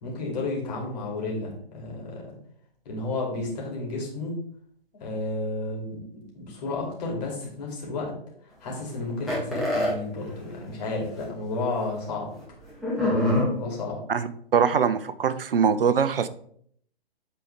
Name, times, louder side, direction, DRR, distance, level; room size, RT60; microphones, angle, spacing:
voice 1, 0.0-2.2 2.8-4.3 4.9-8.1 8.6-12.3 13.5-14.0, left 2 dB, 40° left, -2 dB, 2.6 m, -32 dB
sound 1, 9.3-9.9 10.8-10.9 11.2-11.3 12.8-13.5, left 1 dB, ahead, 1.5 m, -23 dB
voice 2, 14.1-16.3, right 6 dB, 65° right, 13 dB, 0.6 m, -23 dB
8.3 x 4.3 x 3.3 m, 0.64 s
figure-of-eight pair, 130°, 31 cm